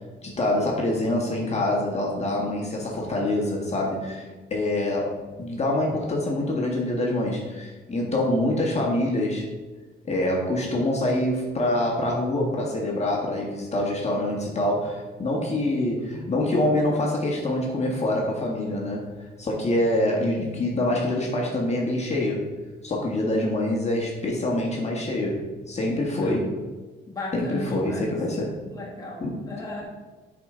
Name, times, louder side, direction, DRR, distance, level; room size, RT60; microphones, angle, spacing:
voice 1, 0.2-9.5 10.0-19.1 19.4-22.5 22.8-26.5 27.3-28.6 29.2-29.4, left 1 dB, 35° left, -2 dB, 1.7 m, -25 dB
voice 2, 27.1-28.1 28.4-29.8, left 2 dB, 20° left, -3 dB, 1.6 m, -36 dB
7.4 x 5.1 x 3.8 m, 1.3 s
cardioid pair, 90°, 20 cm